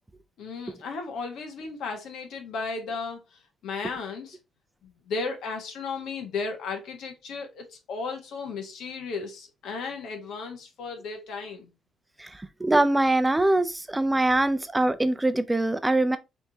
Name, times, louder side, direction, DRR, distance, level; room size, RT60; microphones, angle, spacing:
voice 1, 0.4-3.2 3.6-4.4 4.8-11.7, left 4 dB, 75° left, 1.4 m, -35 dB
voice 2, 12.2-16.2, right 2 dB, 10° right, 0.4 m, -23 dB
4.3 x 3.5 x 2.9 m
cardioid pair, 110°, 0 cm